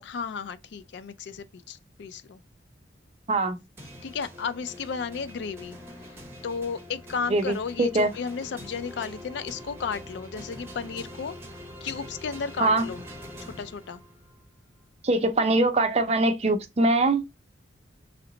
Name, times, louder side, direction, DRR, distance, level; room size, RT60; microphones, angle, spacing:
voice 1, 0.0-2.4 4.0-5.8 6.4-11.4 11.8-13.0 13.4-14.0, left 6 dB, 65° left, 0.4 m, -34 dB
voice 2, 3.3-3.6 7.3-8.1 12.6-12.8 15.0-17.4, right 2 dB, 35° right, 0.6 m, -23 dB
sound 1, 3.8-14.4, equal, 15° right, 0.9 m, -44 dB
3.2 x 2.9 x 3.8 m
head